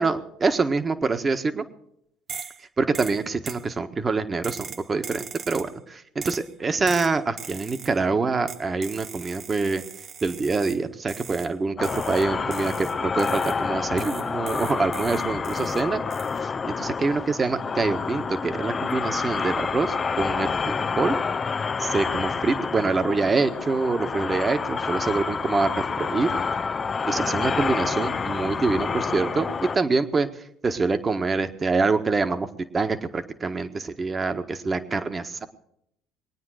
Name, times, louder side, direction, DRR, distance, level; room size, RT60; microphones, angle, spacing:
voice 1, 0.0-1.6 2.8-9.8 10.2-16.0 16.4-21.2 21.8-26.3 27.0-32.5 32.7-35.5, right 4 dB, 30° right, 9 dB, 1.5 m, -25 dB
sound 1, 2.3-2.6 2.9-3.7 4.4-5.8 6.2-6.5 6.9-8.0 8.5-10.8 11.1-11.5 11.8-13.6 14.0-15.8 16.1-16.4, right 6 dB, 45° right, 0.8 m, -40 dB
sound 2, 11.8-29.8, left 5 dB, 35° left, 0.6 m, -28 dB
22.0 x 9.5 x 6.5 m, 0.76 s
hypercardioid pair, 65°, 0 cm